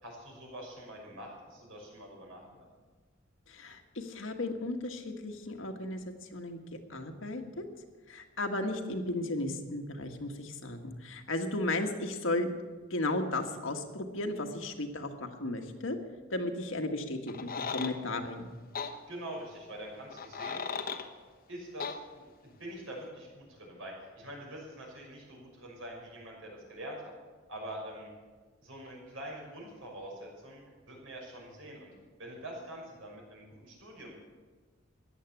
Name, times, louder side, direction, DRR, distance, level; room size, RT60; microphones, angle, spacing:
voice 1, 0.0-2.7 19.1-20.6 21.5-27.1 27.5-28.1 28.6-31.9 32.2-34.2, right 1 dB, 75° right, -1 dB, 6.0 m, -45 dB
voice 2, 3.5-6.6 6.9-7.7 8.1-12.5 12.9-16.0 16.3-18.5, left 2 dB, 75° left, 4 dB, 1.7 m, -35 dB
sound 1, 17.3-17.9 18.7-18.9 20.1-21.1 21.8-22.0, left 6 dB, 50° left, 1.1 m, -36 dB
15.0 x 10.5 x 8.4 m, 1.4 s
head